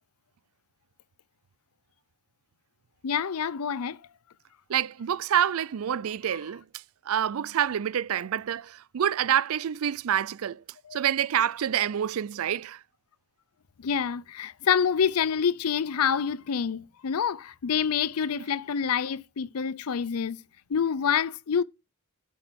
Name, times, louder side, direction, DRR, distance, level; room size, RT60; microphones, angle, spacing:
voice 1, 3.0-4.0 10.9-11.0 13.8-20.4 20.7-21.6, left 7 dB, 90° left, 0.5 m, -27 dB
voice 2, 4.7-6.6 7.1-10.6 10.9-12.8, right 9 dB, 70° right, 0.4 m, -27 dB
8.6 x 6.3 x 5.2 m
head